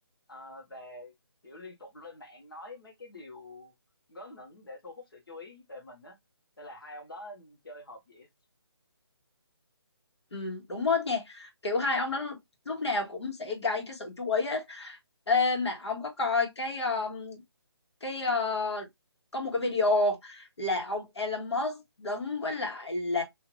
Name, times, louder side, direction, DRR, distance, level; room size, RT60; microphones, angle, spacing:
voice 1, 0.3-1.1 1.4-3.7 4.1-6.2 6.6-8.3, left 1 dB, 55° left, 1.3 m, -46 dB
voice 2, 10.3-12.4 12.6-15.0 15.3-17.4 18.0-18.9 19.3-23.2, left 3 dB, 80° left, 1.5 m, -30 dB
2.8 x 2.5 x 3.0 m
hypercardioid pair, 180°, 14 cm